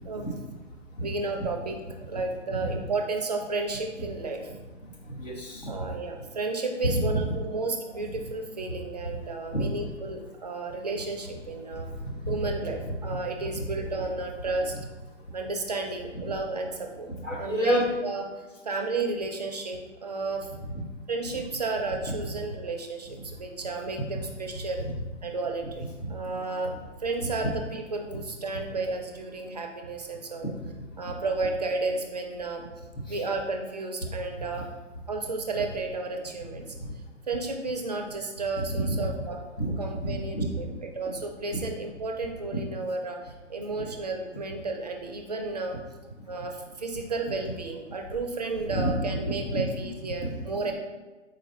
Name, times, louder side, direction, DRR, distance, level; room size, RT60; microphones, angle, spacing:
voice 1, 1.0-1.7 2.1-4.4 5.7-11.9 12.3-14.8 15.3-17.1 17.4-18.2 18.6-20.5 21.1-24.8 25.2-25.8 26.1-26.7 27.0-30.5 31.0-32.6 33.1-34.7 35.1-36.7 37.3-39.4 39.8-40.7 41.0-45.8 46.3-50.7, right 3 dB, 35° right, 3 dB, 0.4 m, -32 dB
voice 2, 4.5-5.7 6.8-7.3 9.0-9.1 9.5-9.8 11.7-13.7 14.7-14.9 17.1-17.9 20.6-20.8 22.4-22.5 23.2-23.3 24.1-24.2 24.8-24.9 25.6-25.7 26.0-26.4 26.7-26.8 28.1-28.2 31.0-31.1 32.6-32.7 33.1-33.2 34.5-34.6 35.5-35.6 36.8-36.9 38.6-39.1 39.6-40.8 46.4-46.5 48.5-49.2 49.5-49.7 50.2-50.3, equal, 85° left, -4 dB, 1.4 m, -31 dB
4.0 x 2.5 x 3.6 m, 1.2 s
figure-of-eight pair, 125°, 37 cm